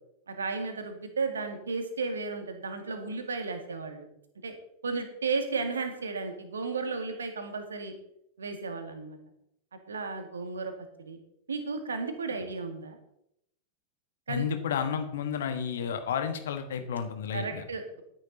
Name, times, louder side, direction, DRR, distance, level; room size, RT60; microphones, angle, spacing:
voice 1, 0.3-4.1 4.4-4.5 4.8-7.9 8.4-9.2 9.9-10.7 11.0-11.2 11.5-13.0 14.3-14.5 17.3-18.0, right 4 dB, 70° right, 7 dB, 1.9 m, -34 dB
voice 2, 14.3-17.6, left 7 dB, 60° left, 8 dB, 1.4 m, -31 dB
12.5 x 10.5 x 4.1 m, 0.78 s
figure-of-eight pair, 90°, 0 cm